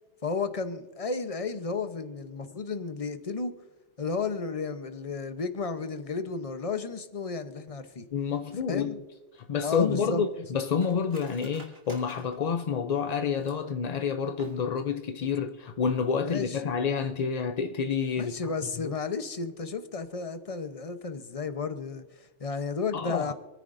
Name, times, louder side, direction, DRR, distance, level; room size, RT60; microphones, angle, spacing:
voice 1, 0.2-3.5 4.0-8.1 8.7-9.0 9.6-10.2 16.2-16.8 18.2-23.3, left 4 dB, 35° left, 0.8 m, -33 dB
voice 2, 8.1-8.9 9.3-18.3 18.8-18.9 22.9-23.3, left 6 dB, 50° left, 0.5 m, -28 dB
Cutlery silverware, 9.3-13.8 14.3-15.0 15.3-15.4 15.7-16.1 16.4-16.6, right 2 dB, 55° right, 2.4 m, -53 dB
27.5 x 10.0 x 2.6 m
omnidirectional pair, 1.3 m